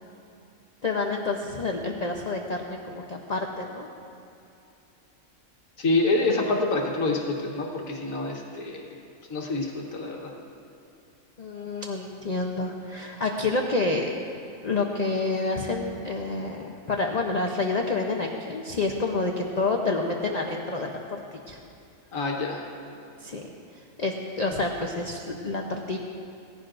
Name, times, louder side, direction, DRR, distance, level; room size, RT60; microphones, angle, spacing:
voice 1, 0.8-3.9 11.4-14.1 14.6-21.2 21.5-21.6 23.2-26.0, left 3 dB, 40° left, 1 dB, 0.7 m, -28 dB
voice 2, 5.8-9.0 9.3-10.3 22.1-22.7, left 2 dB, 75° left, -1 dB, 1.6 m, -27 dB
18.5 x 15.0 x 2.6 m, 2.6 s
omnidirectional pair, 1.4 m